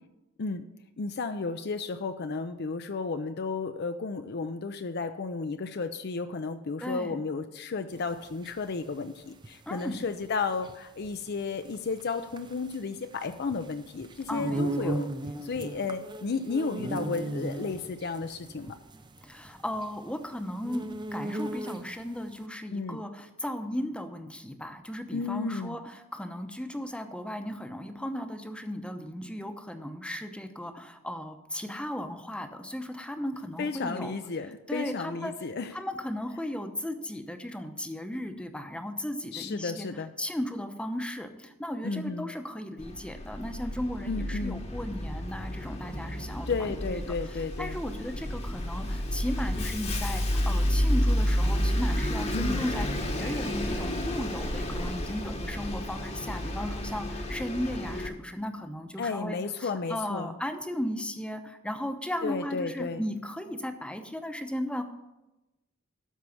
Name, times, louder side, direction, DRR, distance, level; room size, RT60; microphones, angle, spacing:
voice 1, 1.0-15.1 15.4-18.8 22.7-23.0 25.1-25.8 33.6-35.7 39.3-40.1 41.8-42.3 44.1-44.6 46.5-47.8 52.3-52.7 59.0-60.3 62.2-63.0, left 4 dB, 55° left, 8 dB, 0.5 m, -33 dB
voice 2, 6.8-7.2 9.7-10.0 14.3-14.9 19.2-34.2 34.7-35.3 35.7-64.8, left 1 dB, 5° left, 7 dB, 0.8 m, -36 dB
sound 1, 7.9-22.1, right 2 dB, 20° right, 0.6 m, -37 dB
Bus, 42.8-58.1, equal, 35° left, 1.1 m, -30 dB
13.0 x 4.7 x 7.1 m, 0.98 s
head